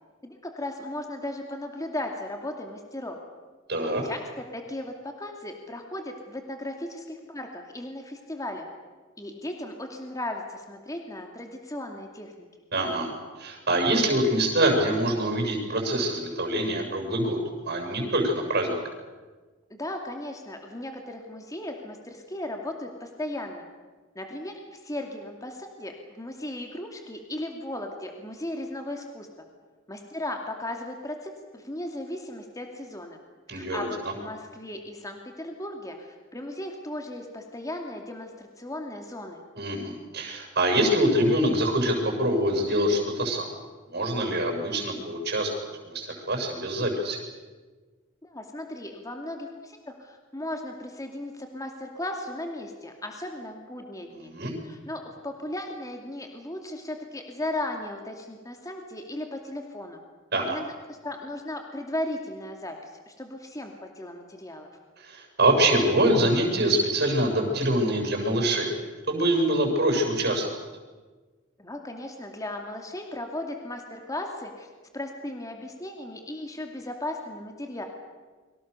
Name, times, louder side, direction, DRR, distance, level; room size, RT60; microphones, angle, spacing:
voice 1, 0.2-3.2 4.0-8.7 9.2-12.3 19.7-23.7 24.1-29.3 29.9-33.2 33.5-39.4 48.2-54.3 54.6-60.0 60.5-64.7 71.6-74.7 74.9-77.8, left 1 dB, 15° left, 3 dB, 2.5 m, -36 dB
voice 2, 3.7-4.0 12.7-13.1 13.4-17.4 17.6-18.8 33.5-33.9 39.6-43.5 43.9-45.5 45.9-47.2 54.2-54.5 60.3-60.6 65.0-68.7 69.1-70.4, right 1 dB, 50° right, 2 dB, 7.1 m, -25 dB
30.0 x 24.0 x 6.9 m, 1.3 s
head